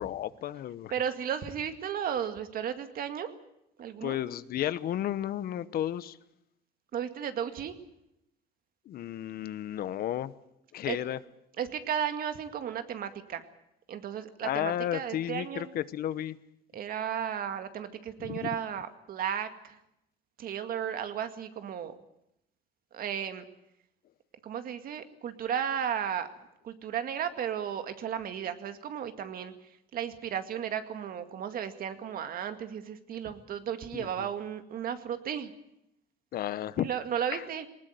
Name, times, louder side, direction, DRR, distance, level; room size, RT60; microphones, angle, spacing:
voice 1, 0.0-0.9 4.0-6.2 8.9-10.3 10.7-11.2 14.4-16.4 18.2-18.5 33.9-34.3 36.3-36.9 37.3-37.4, left 12 dB, 65° left, 16 dB, 1.0 m, -33 dB
voice 2, 0.9-3.3 3.8-4.2 6.9-7.7 10.9-11.0 11.6-13.4 13.9-15.7 16.7-19.8 20.4-22.0 22.9-23.4 24.4-26.3 26.6-29.5 29.9-35.5 36.8-37.7, right 9 dB, 60° right, 8 dB, 2.1 m, -34 dB
19.5 x 19.0 x 9.2 m, 0.80 s
cardioid pair, 110°, 17 cm